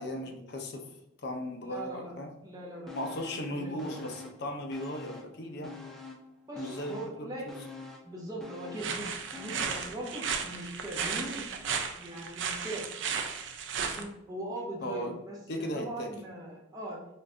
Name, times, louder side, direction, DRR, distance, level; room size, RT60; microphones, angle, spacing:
voice 1, 0.0-2.3 2.9-5.8 6.6-7.6 14.8-15.1 15.5-16.1, left 1 dB, 55° left, 3 dB, 0.6 m, -37 dB
voice 2, 1.6-2.1 2.4-3.1 3.4-4.2 6.5-7.5 8.0-11.4 12.0-12.8 13.8-17.0, right 1 dB, 20° right, -3 dB, 0.9 m, -40 dB
sound 1, 2.9-3.5 3.8-5.4 5.6-10.0 10.4-10.5, left 4 dB, ahead, 0.3 m, -46 dB
sound 2, 8.8-14.0, right 6 dB, 65° right, 0.4 m, -34 dB
3.9 x 2.5 x 3.3 m, 0.88 s
head